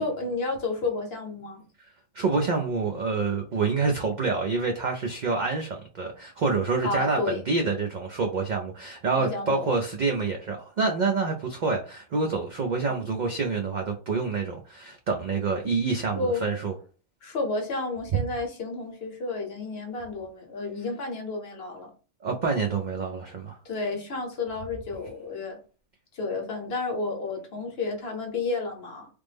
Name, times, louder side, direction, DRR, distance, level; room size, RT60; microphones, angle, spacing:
voice 1, 0.0-1.6 6.8-7.4 9.1-9.7 12.8-13.1 16.1-16.5 17.2-21.9 23.6-25.6 26.1-29.1, left 3 dB, 55° left, 1.0 m, -31 dB
voice 2, 2.1-16.7 22.2-23.6, right 4 dB, 70° right, 0.4 m, -27 dB
3.3 x 2.0 x 3.3 m
omnidirectional pair, 1.3 m